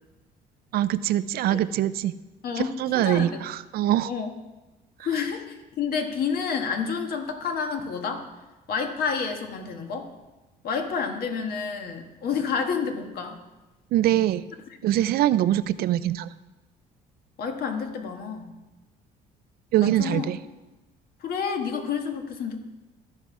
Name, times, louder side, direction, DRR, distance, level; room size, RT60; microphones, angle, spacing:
voice 1, 0.7-2.1 2.8-4.1 13.9-14.4 14.8-16.3 19.7-20.4, right 13 dB, 65° right, 15 dB, 0.4 m, -23 dB
voice 2, 2.4-3.4 4.0-4.3 5.0-8.3 8.7-10.1 10.6-13.4 17.4-18.5 19.8-20.3 21.2-22.6, left 6 dB, 65° left, 4 dB, 1.4 m, -29 dB
13.5 x 5.4 x 4.7 m, 1.1 s
cardioid pair, 110°, 17 cm